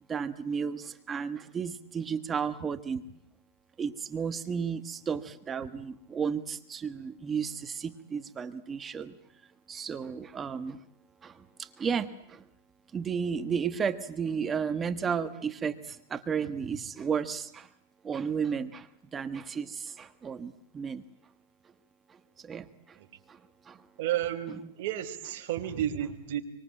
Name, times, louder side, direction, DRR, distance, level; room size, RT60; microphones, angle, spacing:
voice 1, 0.1-3.0 3.8-9.2 9.7-10.8 11.2-12.4 12.9-17.7 18.0-21.0 22.1-23.0 23.3-23.4 23.6-23.8, right 6 dB, 15° right, 10 dB, 1.3 m, -33 dB
voice 2, 24.0-26.4, right 11 dB, 55° right, 3 dB, 4.8 m, -32 dB
26.0 x 25.0 x 8.9 m, 0.74 s
supercardioid pair, 150°, 0 cm